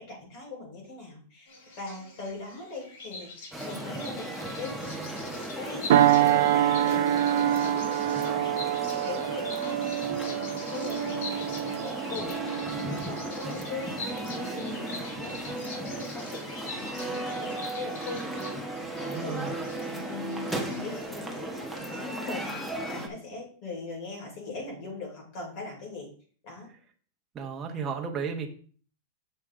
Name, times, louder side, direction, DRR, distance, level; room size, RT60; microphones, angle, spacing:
voice 1, 0.0-1.5 1.8-4.8 5.5-8.5 9.0-9.9 10.2-14.0 14.3-22.6 22.8-26.1 26.4-26.7, left 3 dB, 45° left, -2 dB, 4.6 m, -41 dB
Bird vocalization bird call bird song, 1.5-21.0, left 3 dB, 65° left, 2.5 m, -44 dB
sound 1, 3.5-23.1, right 1 dB, ahead, 1.2 m, -36 dB
sound 2, 5.9-14.7 15.2-15.4, right 12 dB, 70° right, 0.5 m, -26 dB
voice 2, 19.1-19.5 27.3-28.5, right 5 dB, 20° right, 2 dB, 1.2 m, -33 dB
7.4 x 6.9 x 3.7 m, 0.43 s
supercardioid pair, 150°, 0 cm